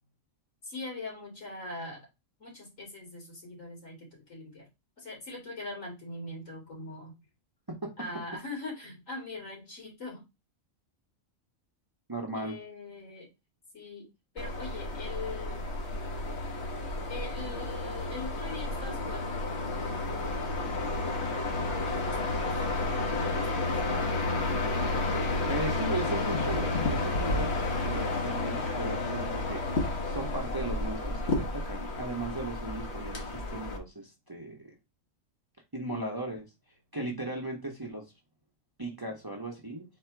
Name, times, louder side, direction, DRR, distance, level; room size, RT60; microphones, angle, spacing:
voice 1, 0.6-2.1 2.4-4.7 5.0-7.1 8.0-10.2 12.3-13.3 13.7-14.1 14.3-15.7 17.1-20.4 21.7-22.5 23.1-23.7, left 2 dB, 70° left, -1 dB, 2.6 m, -42 dB
voice 2, 12.1-12.6 25.5-27.5 27.8-34.7 35.7-36.5 36.9-38.0 38.8-39.8, right 2 dB, 20° right, 0 dB, 0.8 m, -37 dB
sound 1, 14.4-33.8, left 2 dB, 55° left, 1.3 m, -31 dB
4.2 x 2.8 x 4.5 m, 0.24 s
omnidirectional pair, 1.4 m